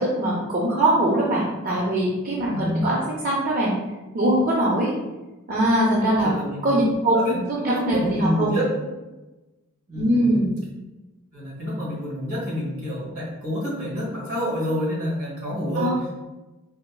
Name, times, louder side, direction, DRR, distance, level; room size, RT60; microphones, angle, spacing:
voice 1, 0.0-3.8 4.1-4.9 5.5-6.3 6.6-7.2 7.5-8.5 10.0-10.6 15.8-16.0, right 1 dB, 40° right, -5 dB, 0.5 m, -22 dB
voice 2, 2.4-2.9 6.2-7.3 7.6-8.9 9.9-10.3 11.3-16.0, equal, 70° right, -4 dB, 1.4 m, -28 dB
4.1 x 2.2 x 2.2 m, 1.1 s
head